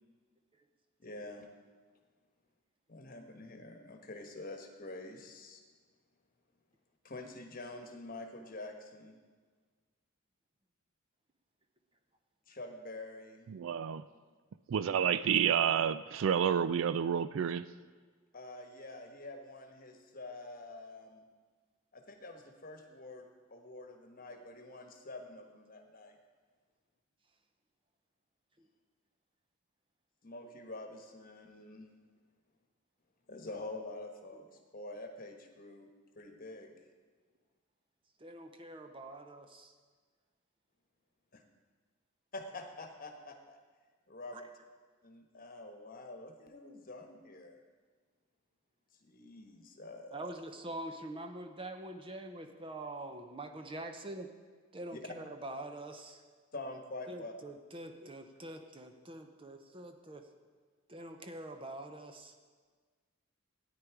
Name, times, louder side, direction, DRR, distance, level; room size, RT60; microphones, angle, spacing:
voice 1, 1.0-1.5 2.9-5.6 7.0-9.2 12.5-13.5 18.3-21.2 21.9-26.2 30.2-31.9 33.3-34.5 34.7-35.9 36.1-36.7 42.3-43.6 44.1-44.5 45.0-47.6 49.0-50.1 54.9-55.0 56.5-57.3, left 2 dB, 40° left, 4 dB, 1.2 m, -47 dB
voice 2, 13.5-14.0 14.7-17.7, right 8 dB, 60° right, 15 dB, 0.3 m, -29 dB
voice 3, 38.2-39.7 44.3-44.4 50.1-54.3 54.7-56.2 57.1-60.2 60.9-62.3, right 1 dB, 25° right, 6 dB, 0.7 m, -45 dB
13.5 x 9.7 x 4.7 m, 1.5 s
head